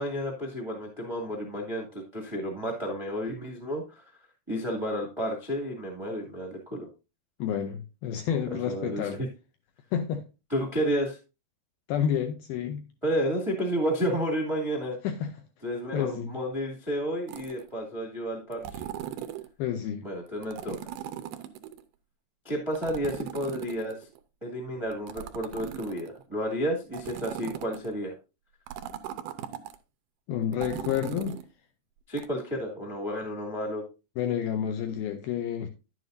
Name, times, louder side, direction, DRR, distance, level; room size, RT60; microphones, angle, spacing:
voice 1, 0.0-4.0 4.5-6.9 8.5-9.3 10.5-11.2 13.0-15.0 15.6-18.8 20.0-20.9 22.4-24.0 24.4-28.1 32.1-33.8, equal, 25° right, 0.6 m, -31 dB
voice 2, 7.4-9.2 9.9-10.2 11.9-12.9 15.0-15.3 15.9-16.4 19.6-20.0 30.3-31.4 34.2-35.7, left 9 dB, 85° left, 2.2 m, -29 dB
sound 1, 17.3-17.7 18.5-19.5 20.4-21.8 22.8-24.2 24.9-26.2 26.9-27.9 28.7-29.8 30.5-31.5 32.2-32.3, right 11 dB, 80° right, 2.3 m, -38 dB
10.5 x 9.3 x 2.6 m
omnidirectional pair, 5.0 m